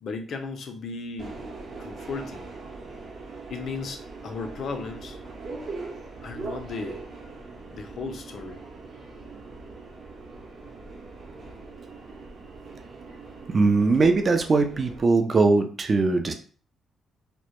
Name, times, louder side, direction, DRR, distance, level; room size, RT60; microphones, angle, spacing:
voice 1, 0.0-1.4 1.8-2.5 3.5-5.2 6.2-7.0 7.7-8.6, left 4 dB, 60° left, 6 dB, 0.4 m, -35 dB
Subway metro underground, 1.2-15.0, right 3 dB, 55° right, 0.7 m, -41 dB
voice 2, 13.5-16.3, right 3 dB, 40° right, 6 dB, 0.3 m, -21 dB
2.1 x 2.0 x 2.9 m, 0.41 s
cardioid pair, 90°, 0 cm